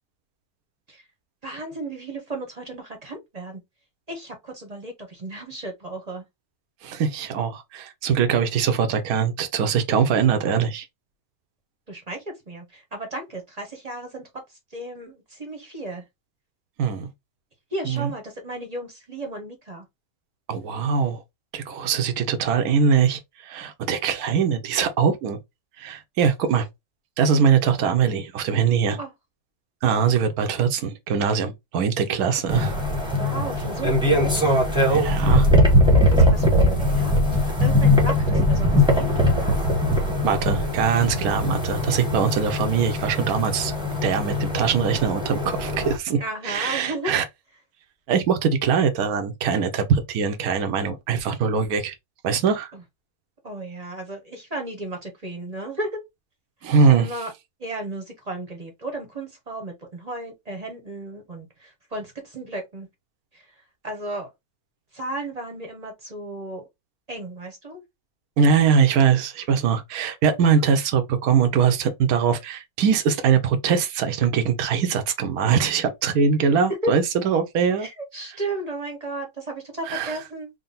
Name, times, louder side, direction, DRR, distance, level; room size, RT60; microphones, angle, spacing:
voice 1, 1.4-3.6 4.1-6.2 11.9-16.0 17.7-19.9 29.0-29.1 33.2-34.6 36.2-37.2 37.6-39.6 46.2-47.1 52.7-52.8 53.4-56.0 56.8-57.3 57.6-62.9 63.3-64.3 64.9-66.7 67.1-67.8 76.4-76.5 76.8-76.9 77.8-80.5, right 1 dB, 30° right, 0.9 m, -34 dB
voice 2, 6.8-10.9 16.8-17.1 17.9-18.1 20.5-21.2 21.5-25.4 25.8-26.7 27.2-29.0 29.8-32.7 34.9-35.5 40.2-43.7 44.0-46.2 46.4-47.2 48.1-51.9 52.2-52.7 56.6-57.1 68.4-77.9 79.9-80.1, right 6 dB, 80° right, 1.2 m, -22 dB
sound 1, 32.5-46.0, left 1 dB, 5° right, 0.9 m, -21 dB
3.8 x 2.2 x 3.9 m
omnidirectional pair, 1.6 m